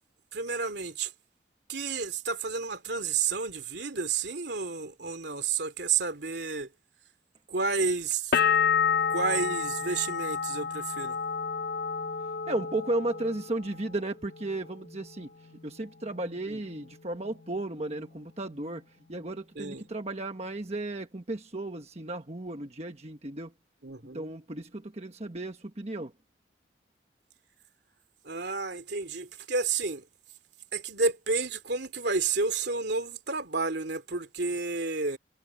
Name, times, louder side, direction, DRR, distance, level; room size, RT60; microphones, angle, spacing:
voice 1, 0.3-1.1 1.7-6.7 7.5-8.4 9.1-11.2 16.5-16.6 19.6-19.8 23.8-24.3 28.2-30.0 30.7-35.2, right 4 dB, 65° right, 2.7 m, -31 dB
sound 1, 8.3-14.0 14.3-15.0, left 6 dB, 55° left, 0.5 m, -29 dB
voice 2, 12.5-15.3 15.6-18.8 19.1-23.5 24.1-26.1, right 2 dB, 35° right, 1.3 m, -34 dB
head